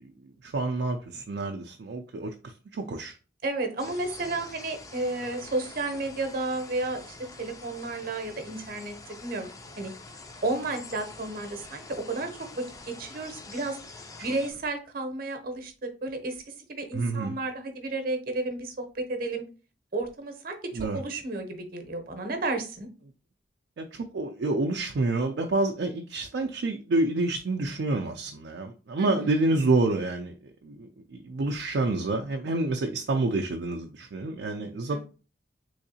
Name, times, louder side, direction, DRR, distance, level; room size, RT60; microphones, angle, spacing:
voice 1, 0.4-3.1 16.9-17.4 20.7-21.0 23.8-30.3 30.6-35.0, right 2 dB, 70° right, 0.4 m, -28 dB
voice 2, 3.4-9.5 9.8-9.9 10.4-12.3 12.6-13.8 14.2-16.4 16.8-19.4 19.9-22.9 29.0-29.3 34.9-35.0, right 2 dB, 55° right, 0.8 m, -32 dB
sound 1, 3.8-14.5, left 3 dB, 20° left, 0.4 m, -46 dB
3.6 x 3.2 x 2.7 m
head